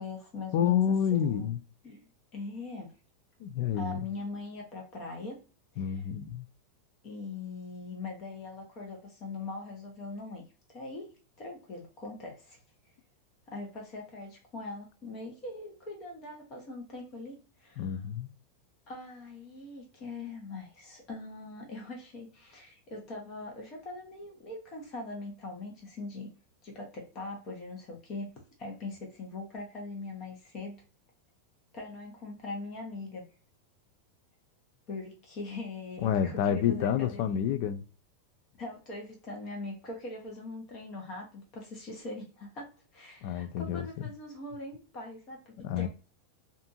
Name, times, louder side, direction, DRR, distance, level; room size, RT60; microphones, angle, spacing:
voice 1, 0.0-1.5 1.8-2.9 3.7-5.4 5.7-6.0 7.0-10.4 10.7-12.6 13.5-18.0 18.9-26.3 26.6-28.3 28.6-30.8 31.7-33.2 34.9-37.4 38.6-45.9, left 3 dB, 35° left, 0.9 m, -41 dB
voice 2, 0.5-1.6 3.4-4.1 5.8-6.4 17.8-18.3 36.0-37.8 43.2-43.9 45.6-45.9, left 9 dB, 55° left, 0.3 m, -29 dB
2.6 x 2.4 x 2.6 m
supercardioid pair, 145°, 0 cm